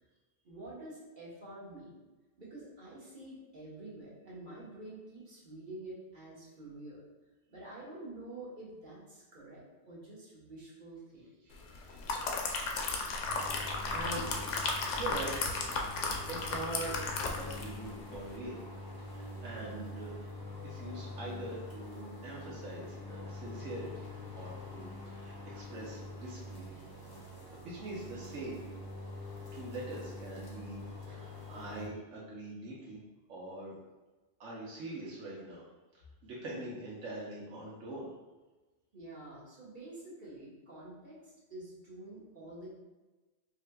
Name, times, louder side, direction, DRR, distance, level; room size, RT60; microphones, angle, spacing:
voice 1, 0.4-2.0 2.4-7.0 7.5-12.5 38.9-42.7, right 2 dB, 45° right, -6 dB, 1.1 m, -48 dB
voice 2, 11.5-12.0 13.9-14.3 15.0-15.4 16.3-17.0 17.3-18.6 19.0-20.1 20.6-24.1 24.3-26.8 27.2-28.6 29.5-33.0 33.3-33.8 34.4-35.6 36.2-38.1, right 2 dB, 85° right, -6 dB, 1.1 m, -43 dB
sound 1, 11.7-17.8 18.1-18.3, left 3 dB, 90° left, 0.9 m, -35 dB
sound 2, 13.3-31.9, left 2 dB, 25° left, 0.5 m, -45 dB
4.7 x 2.8 x 2.2 m, 1.2 s
omnidirectional pair, 1.2 m